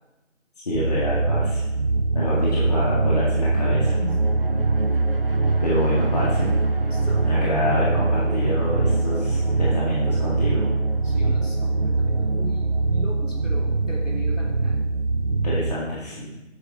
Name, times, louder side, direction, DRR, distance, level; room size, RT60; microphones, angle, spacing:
voice 1, 0.7-1.6 2.1-3.9 5.6-6.6 7.2-10.7 15.3-16.4, left 1 dB, 30° left, -6 dB, 1.8 m, -27 dB
sound 1, 0.7-15.8, right 3 dB, 45° right, 0.6 m, -22 dB
voice 2, 4.0-4.7 6.8-7.3 11.0-14.8, left 1 dB, 70° left, -3 dB, 3.4 m, -38 dB
11.0 x 8.2 x 3.7 m, 1.1 s
figure-of-eight pair, 160°, 39 cm